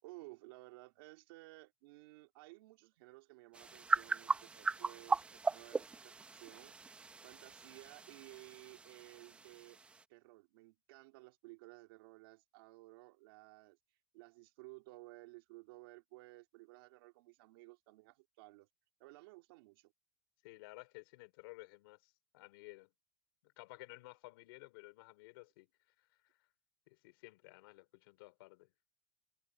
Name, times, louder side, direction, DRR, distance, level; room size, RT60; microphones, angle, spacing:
voice 1, 0.0-6.8 7.2-9.8 10.1-13.8 14.1-18.7 19.0-19.9, right 23 dB, 75° right, 3.8 m, -56 dB
sound 1, 3.5-10.0, right 4 dB, 10° right, 0.8 m, -38 dB
voice 2, 20.4-22.9 23.4-26.3 26.9-28.7, left 23 dB, 75° left, 3.7 m, -55 dB
cardioid pair, 175°, 12 cm